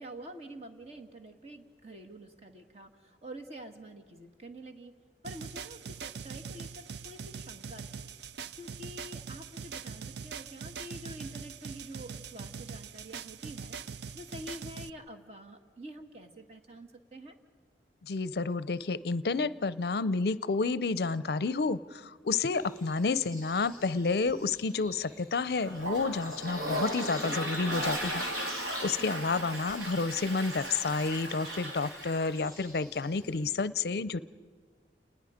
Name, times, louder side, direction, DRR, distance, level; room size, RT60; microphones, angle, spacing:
voice 1, 0.0-4.9 5.2-8.1 8.6-17.3 29.0-29.4, right 1 dB, 35° right, 6 dB, 1.6 m, -47 dB
sound 1, 5.2-14.9, right 6 dB, 70° right, 0.5 m, -42 dB
voice 2, 18.0-34.2, left 4 dB, 60° left, 17 dB, 0.5 m, -30 dB
sound 2, 22.6-33.6, left 1 dB, 20° right, 4.2 m, -47 dB
Toilet flush, 25.6-32.4, equal, 85° right, 3.3 m, -36 dB
29.5 x 20.0 x 5.1 m, 1.5 s
head